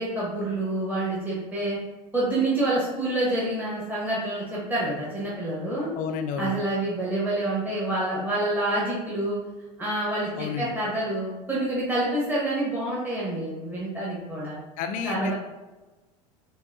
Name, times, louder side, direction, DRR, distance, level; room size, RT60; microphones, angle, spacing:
voice 1, 0.0-1.8 2.1-5.9 6.4-9.4 9.8-14.6 15.0-15.3, right 1 dB, 10° right, -7 dB, 0.9 m, -27 dB
voice 2, 5.9-6.6 10.4-10.7 14.8-15.3, left 6 dB, 45° left, 6 dB, 0.4 m, -30 dB
3.7 x 2.2 x 2.3 m, 1.2 s
hypercardioid pair, 80°, 20 cm